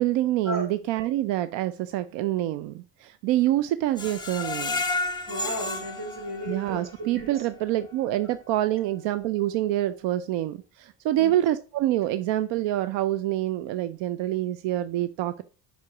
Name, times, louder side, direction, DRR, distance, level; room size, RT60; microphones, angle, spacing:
voice 1, 0.0-4.8 6.4-15.4, right 14 dB, 90° right, 13 dB, 0.6 m, -26 dB
Screech, 4.0-7.0 7.4-7.5 7.9-8.0, left 3 dB, 10° left, 1.2 m, -31 dB
voice 2, 5.3-6.8 7.1-7.3 11.2-11.3, equal, 50° right, 1 dB, 3.4 m, -34 dB
5.7 x 4.8 x 5.8 m, 0.35 s
cardioid pair, 110°, 42 cm